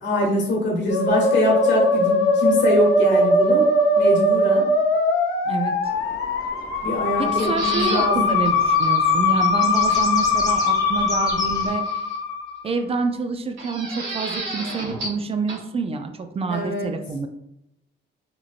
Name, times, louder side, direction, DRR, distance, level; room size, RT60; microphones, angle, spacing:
voice 1, 0.0-3.7 3.9-4.6 6.8-8.4 16.5-16.9, left 1 dB, 70° left, -2 dB, 1.2 m, -23 dB
Musical instrument, 0.9-12.7, left 2 dB, 90° left, 0.5 m, -20 dB
sound 1, 5.8-11.7, left 1 dB, 20° left, 1.0 m, -36 dB
voice 2, 7.2-11.8 12.6-17.3, right 4 dB, 30° right, 7 dB, 0.3 m, -27 dB
sound 2, 7.2-8.1 8.4-8.5 8.8-8.9 9.9-10.3 11.5-12.2 13.6-15.2 15.5-15.6, right 2 dB, 80° right, 1.0 m, -32 dB
2.9 x 2.6 x 2.4 m, 0.81 s
cardioid pair, 90°, 20 cm